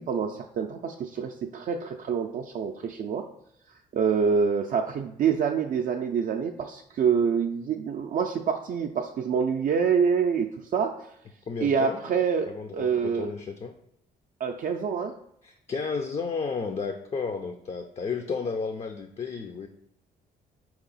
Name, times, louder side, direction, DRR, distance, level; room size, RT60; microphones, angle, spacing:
voice 1, 0.0-3.3 3.9-11.1 11.6-12.5 12.7-13.3 14.4-15.2, right 6 dB, 50° right, 3 dB, 0.4 m, -26 dB
voice 2, 11.5-12.0 12.5-13.7 15.4-19.7, left 5 dB, 35° left, 6 dB, 0.4 m, -32 dB
4.0 x 2.9 x 3.9 m, 0.76 s
supercardioid pair, 65°, 18 cm